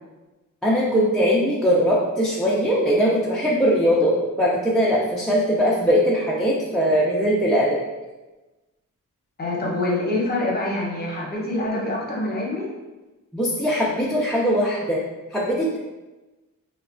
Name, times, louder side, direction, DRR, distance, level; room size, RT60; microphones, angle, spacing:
voice 1, 0.6-7.8 13.3-15.0 15.3-15.8, equal, ahead, -6 dB, 0.3 m, -20 dB
voice 2, 9.4-12.7, left 2 dB, 30° left, -4 dB, 0.8 m, -25 dB
3.0 x 2.2 x 2.4 m, 1.1 s
cardioid pair, 100°, 33 cm